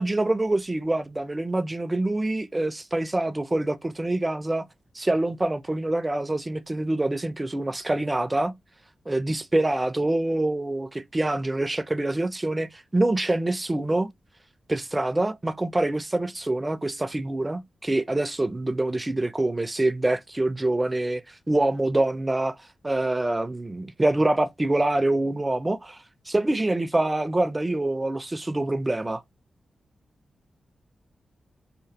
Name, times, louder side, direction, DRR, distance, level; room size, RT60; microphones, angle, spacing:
voice 1, 0.0-4.6 5.0-8.5 9.1-14.1 14.7-21.2 21.5-22.6 22.8-26.0 26.3-29.2, right 2 dB, 15° right, 0.3 m, -25 dB
2.9 x 2.0 x 2.7 m
wide cardioid pair, 115°, 0 cm